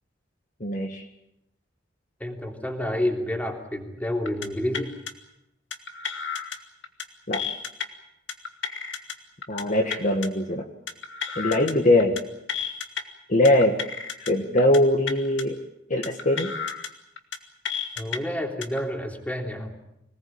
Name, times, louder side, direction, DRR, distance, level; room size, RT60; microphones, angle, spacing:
voice 1, 0.6-1.0 7.3-7.4 9.5-10.7 11.4-12.2 13.3-13.8 14.2-15.6 15.9-16.5, left 1 dB, 45° left, 3 dB, 1.9 m, -21 dB
voice 2, 2.2-4.9 18.0-19.7, left 1 dB, 10° left, 3 dB, 3.2 m, -29 dB
sound 1, 4.3-4.5 4.7-5.1 5.7-6.6 6.8-7.0 7.3-7.8 8.3-9.1 9.4-9.6 9.9-10.3 10.9-11.7 12.0-12.2 12.5-13.0 13.4-14.3 14.6-14.8 15.1-15.4 16.0-16.9 17.2-17.4 17.6-18.2 18.6-18.8, left 6 dB, 75° left, 2.3 m, -32 dB
26.0 x 19.0 x 8.8 m, 0.85 s
head